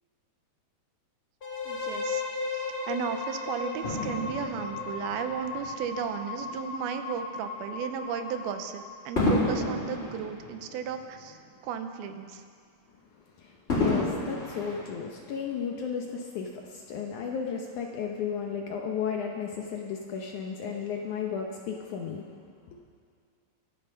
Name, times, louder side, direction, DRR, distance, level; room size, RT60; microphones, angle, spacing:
sound 1, 1.4-9.2, left 4 dB, 45° left, 1.1 m, -36 dB
voice 1, 1.7-2.2 2.5-11.4 11.6-12.4, right 7 dB, 90° right, 7 dB, 2.8 m, -34 dB
Fireworks, 3.8-6.4 7.1-7.3 9.2-11.7 12.0-12.1 13.7-15.6 16.3-16.4, left 2 dB, 20° left, 2.2 m, -31 dB
voice 2, 13.3-22.3 22.7-22.8, left 6 dB, 70° left, 1 dB, 2.0 m, -34 dB
24.5 x 8.7 x 5.6 m, 2.2 s
omnidirectional pair, 4.3 m